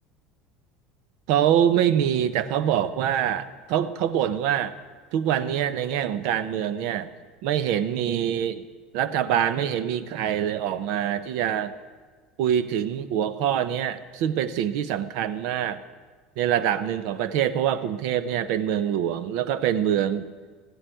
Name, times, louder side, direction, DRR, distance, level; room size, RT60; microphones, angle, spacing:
voice 1, 1.3-4.7 5.1-7.1 7.4-8.6 8.9-11.7 12.4-15.8 16.4-20.3, right 10 dB, 60° right, 14 dB, 0.8 m, -25 dB
14.0 x 8.0 x 9.1 m, 1.5 s
cardioid pair, 165°, 0 cm